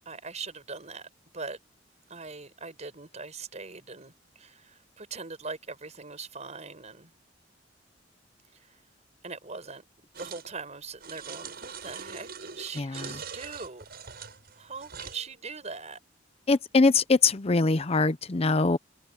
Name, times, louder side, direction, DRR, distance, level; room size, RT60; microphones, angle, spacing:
voice 1, 0.0-1.1 1.3-1.6 2.1-7.1 8.6-8.8 9.2-9.8 10.2-13.8 14.6-16.0, right 4 dB, 40° right, 5.1 m, -41 dB
sound 1, 10.1-10.5 11.0-15.2, right 6 dB, 55° right, 7.9 m, -42 dB
voice 2, 12.8-13.1 16.5-18.8, left 3 dB, 35° left, 0.6 m, -23 dB
head